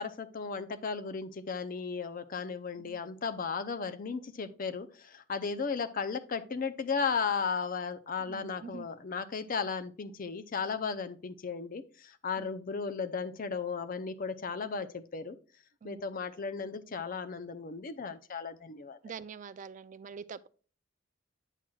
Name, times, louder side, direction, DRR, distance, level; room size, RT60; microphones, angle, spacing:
voice 1, 0.0-15.4 15.8-19.0, left 5 dB, 45° left, 0.5 m, -35 dB
voice 2, 8.2-8.9 12.4-12.5 15.8-16.0 19.0-20.5, right 6 dB, 40° right, 0.3 m, -45 dB
8.9 x 6.0 x 2.3 m
head